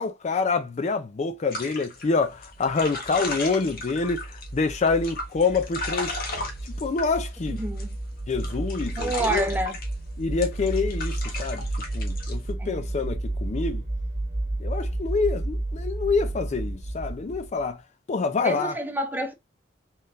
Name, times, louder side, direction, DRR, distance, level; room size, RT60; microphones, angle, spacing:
voice 1, 0.0-6.1 6.8-7.6 8.3-9.4 10.2-11.7 11.9-13.8 14.6-17.8 18.1-18.8, left 4 dB, 35° left, 0.4 m, -26 dB
sound 1, 1.5-4.5 4.9-7.9 8.3-9.9 10.4-12.3, left 2 dB, 55° left, 1.3 m, -35 dB
sound 2, 2.4-17.7, right 1 dB, 45° right, 1.1 m, -32 dB
voice 2, 7.5-8.0 9.0-9.8 12.6-12.8 18.4-19.3, right 2 dB, 10° right, 0.8 m, -28 dB
3.9 x 3.8 x 2.5 m
head